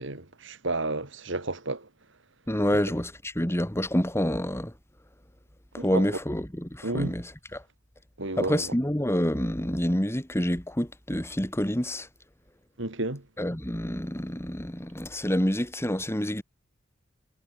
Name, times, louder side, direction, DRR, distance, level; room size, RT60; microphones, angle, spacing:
voice 1, 0.0-1.8 5.8-6.0 6.8-7.1 8.2-8.6 12.8-13.2, right 2 dB, 70° right, 3.0 m, -31 dB
voice 2, 2.5-4.7 5.7-7.6 8.4-12.1 13.4-16.4, equal, 15° left, 3.0 m, -28 dB
head